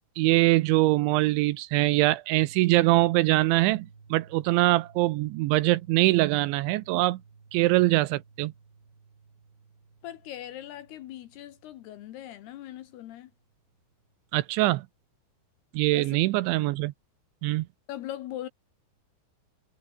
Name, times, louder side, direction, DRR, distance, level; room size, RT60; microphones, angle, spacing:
voice 1, 0.2-7.2 7.5-8.5 14.3-14.9 15.7-16.9 17.4-17.7, right 18 dB, 80° right, 2.9 m, -23 dB
sound 1, 2.4-14.3, right 5 dB, 60° right, 9.2 m, -56 dB
voice 2, 10.0-13.3 15.9-16.2 17.9-18.5, left 12 dB, 70° left, 2.7 m, -40 dB
omnidirectional pair, 5.6 m